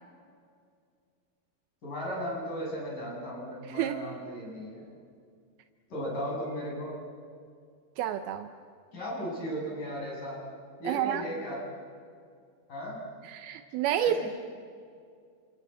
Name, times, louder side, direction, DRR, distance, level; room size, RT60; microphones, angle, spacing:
voice 1, 1.8-4.8 5.9-6.9 8.9-10.4 10.8-11.7 12.7-13.0 14.0-14.3, equal, 55° left, -3 dB, 9.5 m, -36 dB
voice 2, 8.0-8.5 10.9-11.2 13.3-14.2, right 11 dB, 85° right, 8 dB, 2.8 m, -29 dB
28.0 x 26.0 x 7.9 m, 2.3 s
omnidirectional pair, 4.4 m